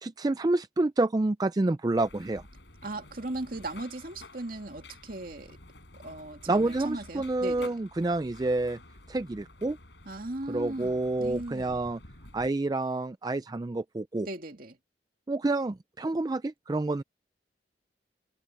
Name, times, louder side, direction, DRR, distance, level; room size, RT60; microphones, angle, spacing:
voice 1, 0.0-2.4 6.5-8.8 9.1-9.8 10.5-12.0 12.3-14.3 15.3-17.0, right 2 dB, 20° right, 0.4 m, -28 dB
sound 1, 2.0-12.5, left 2 dB, 75° left, 5.3 m, -51 dB
voice 2, 2.8-5.6 6.0-7.8 10.1-11.9 14.2-14.8, right 2 dB, 50° right, 2.3 m, -38 dB
head